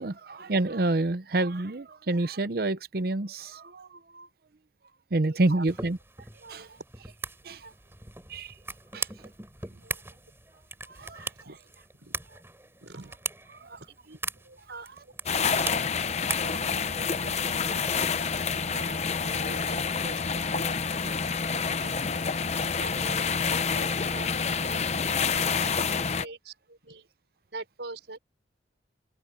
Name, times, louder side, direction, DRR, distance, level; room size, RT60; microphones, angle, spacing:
voice 1, 0.0-4.3 5.1-6.0 6.5-6.7 7.4-7.6 8.3-8.5 8.9-9.1 10.9-11.3 13.5-13.8 16.3-16.7, right 2 dB, 55° right, 0.7 m, -29 dB
voice 2, 5.3-5.6 6.4-6.8 7.6-7.7 8.9-9.3 9.8-10.0 11.5-11.6 11.9-12.4 12.8-13.1 13.6-14.2 14.4-18.1 18.7-22.2 22.8-25.9 26.2-27.1 27.5-28.2, right 2 dB, 80° right, 5.7 m, -45 dB
sound 1, 5.7-18.5, right 3 dB, 15° right, 4.0 m, -41 dB
sound 2, 15.3-26.3, left 5 dB, 40° left, 0.7 m, -28 dB
open air
head